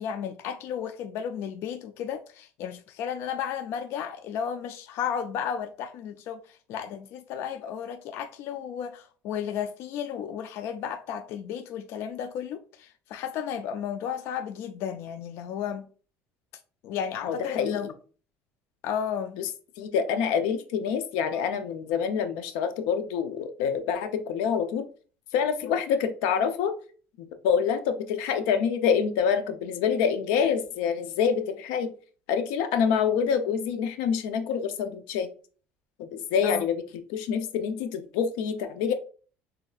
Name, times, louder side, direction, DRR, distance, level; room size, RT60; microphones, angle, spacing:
voice 1, 0.0-15.9 16.8-17.9 18.8-19.4 36.4-36.6, left 8 dB, 55° left, 0.4 m, -33 dB
voice 2, 17.2-17.9 19.4-19.5 19.8-24.8 25.3-26.7 27.2-31.9 32.3-35.3 36.0-36.8 37.1-38.9, left 7 dB, 90° left, 0.6 m, -26 dB
6.4 x 2.7 x 2.4 m
cardioid pair, 155°, 5 cm